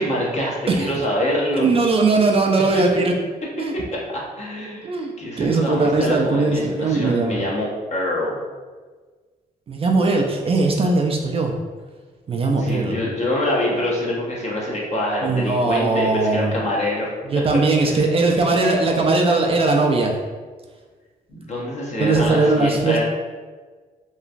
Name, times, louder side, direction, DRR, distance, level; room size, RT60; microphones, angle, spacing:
voice 1, 0.0-1.6 2.7-2.8 4.4-4.9 5.2-8.4 12.6-17.1 17.9-18.0 21.3-23.0, left 1 dB, 45° left, -3 dB, 0.8 m, -25 dB
voice 2, 1.6-3.1 3.6-3.7 4.8-7.4 9.7-11.5 12.3-13.0 15.2-16.6 17.3-20.1 22.0-23.0, right 3 dB, 40° right, 1 dB, 0.3 m, -19 dB
2.9 x 2.3 x 2.5 m, 1.4 s
cardioid pair, 90°, 16 cm